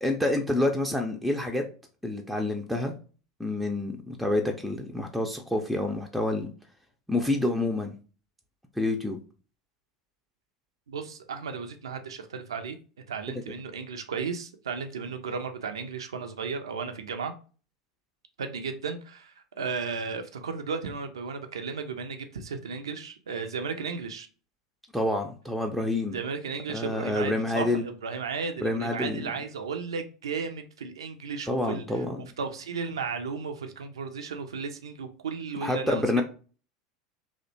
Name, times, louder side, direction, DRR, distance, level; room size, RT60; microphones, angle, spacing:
voice 1, 0.0-1.6 2.0-2.9 3.4-6.5 7.1-7.9 8.8-9.2 24.9-26.2 26.7-27.8 28.6-29.3 31.5-32.2 35.6-36.2, left 2 dB, ahead, 0.4 m, -28 dB
voice 2, 10.9-12.8 13.1-17.3 18.4-24.3 26.1-32.0 32.4-36.2, right 5 dB, 80° right, 0.3 m, -34 dB
2.6 x 2.1 x 2.5 m
figure-of-eight pair, 85°, 3 cm